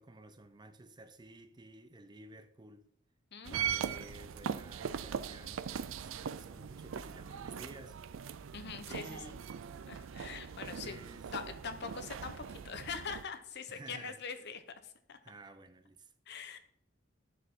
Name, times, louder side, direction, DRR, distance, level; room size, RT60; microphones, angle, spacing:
voice 1, 0.0-2.9 3.5-8.4 8.9-9.4 10.6-11.3 13.7-14.2 15.2-16.1, right 2 dB, 20° right, 0.5 m, -53 dB
voice 2, 3.3-3.8 8.5-9.2 9.9-11.0 11.3-15.2 16.3-16.6, left 5 dB, 60° left, 0.9 m, -43 dB
sound 1, 3.4-13.2, right 7 dB, 85° right, 0.4 m, -40 dB
11.0 x 6.6 x 3.7 m
head